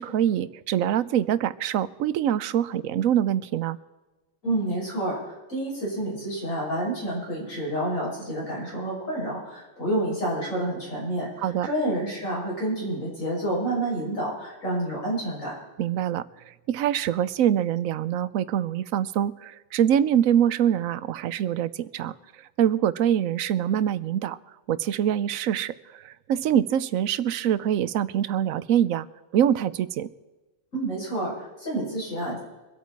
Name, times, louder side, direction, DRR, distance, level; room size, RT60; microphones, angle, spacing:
voice 1, 0.0-3.8 11.4-11.7 15.8-16.2 16.7-22.1 22.6-24.4 24.7-29.1 29.3-30.1, right 10 dB, 85° right, 16 dB, 1.0 m, -24 dB
voice 2, 4.4-15.6 30.7-32.4, right 1 dB, 75° left, -5 dB, 6.9 m, -29 dB
24.5 x 8.5 x 4.6 m, 1.1 s
omnidirectional pair, 1.4 m